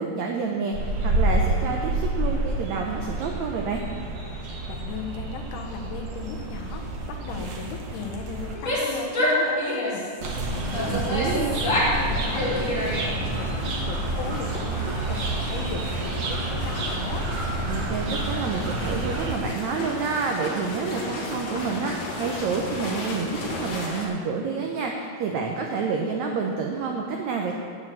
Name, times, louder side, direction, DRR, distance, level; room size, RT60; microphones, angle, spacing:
voice 1, 0.0-3.8 10.9-11.6 17.7-27.5, right 5 dB, 85° right, 1 dB, 1.6 m, -28 dB
sound 1, 0.7-8.5 10.2-19.4, right 2 dB, 60° right, 1.8 m, -29 dB
voice 2, 4.7-10.0 10.5-17.3, left 5 dB, 70° left, 3 dB, 2.2 m, -36 dB
Female speech woman speaking / Yell, 8.5-10.1 10.7-12.0 12.3-13.3, left 1 dB, 30° left, 1.5 m, -26 dB
sound 2, 11.9-24.1, left 2 dB, 50° left, 2.4 m, -36 dB
9.5 x 7.9 x 7.4 m, 2.2 s
omnidirectional pair, 4.3 m